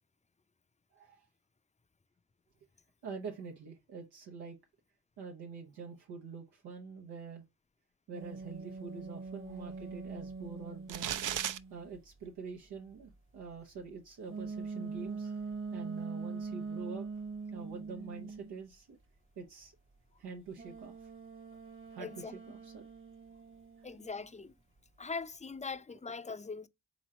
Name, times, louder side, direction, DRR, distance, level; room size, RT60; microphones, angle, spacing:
voice 1, 0.9-1.2 3.0-4.6 5.2-7.4 8.1-11.2 11.7-15.4 15.7-17.1 17.5-19.0 19.4-19.7 20.2-21.1 21.9-22.8, right 5 dB, 90° right, 0.9 m, -46 dB
sound 1, 8.1-12.0 14.3-18.6 20.6-24.4, right 4 dB, 30° right, 1.0 m, -43 dB
sound 2, 10.9-11.6, right 10 dB, 55° right, 0.5 m, -34 dB
voice 2, 22.0-22.4 23.8-24.5 25.0-26.7, left 4 dB, 20° left, 0.5 m, -41 dB
3.8 x 3.1 x 4.1 m
cardioid pair, 50°, 39 cm